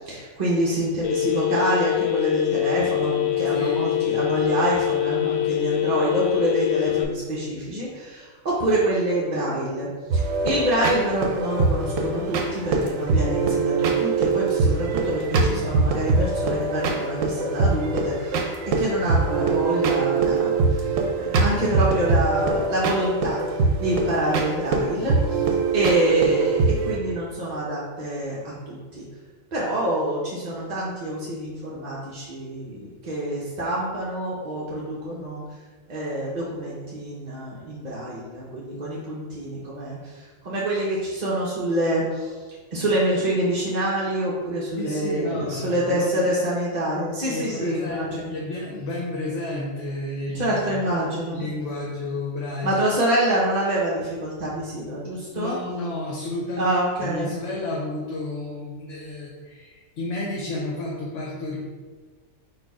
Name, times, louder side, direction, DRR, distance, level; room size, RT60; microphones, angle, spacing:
voice 1, 0.1-18.5 18.8-20.9 21.1-23.4 23.8-25.4 25.7-29.0 29.5-35.4 35.9-42.3 42.7-48.3 50.3-51.5 52.6-55.6 56.6-57.3, right 1 dB, 40° right, -6 dB, 0.7 m, -26 dB
Telephone, 1.0-7.0, left 14 dB, 90° left, 1.0 m, -24 dB
voice 2, 3.4-3.8 44.8-46.3 47.3-50.8 51.3-52.7 55.3-61.6, left 2 dB, 65° left, -3 dB, 1.0 m, -31 dB
sound 1, 10.1-27.0, right 4 dB, 75° right, 1.0 m, -23 dB
4.4 x 2.6 x 4.7 m, 1.4 s
omnidirectional pair, 1.4 m